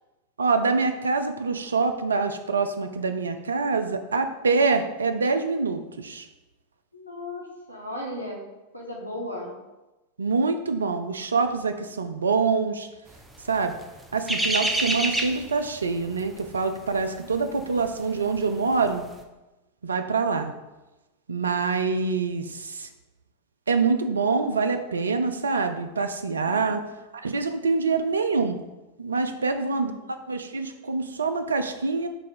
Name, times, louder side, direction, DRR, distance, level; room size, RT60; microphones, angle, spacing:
voice 1, 0.4-6.3 10.2-12.9 13.5-13.7 14.1-19.0 19.8-20.5 21.3-22.9 23.7-26.8 27.1-28.6 29.0-32.1, right 4 dB, 70° right, 8 dB, 0.3 m, -25 dB
voice 2, 6.9-8.4 8.7-9.6 26.4-26.9 29.4-30.0, left 1 dB, 90° right, -1 dB, 0.8 m, -37 dB
sound 1, 13.3-18.4 18.7-19.0, right 1 dB, 5° right, 0.5 m, -28 dB
4.1 x 2.4 x 4.3 m, 1.1 s
figure-of-eight pair, 90°, 0 cm